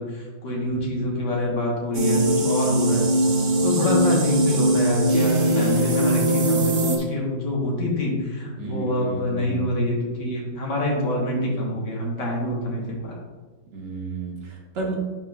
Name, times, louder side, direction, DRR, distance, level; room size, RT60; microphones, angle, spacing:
voice 1, 0.0-3.1 3.6-13.2, left 1 dB, 65° left, -2 dB, 1.9 m, -26 dB
sound 1, 1.9-7.0, right 1 dB, 90° right, 0.4 m, -21 dB
voice 2, 8.6-9.7 13.7-15.0, right 4 dB, 65° right, -2 dB, 1.8 m, -32 dB
9.9 x 4.2 x 2.3 m, 1.3 s
omnidirectional pair, 2.0 m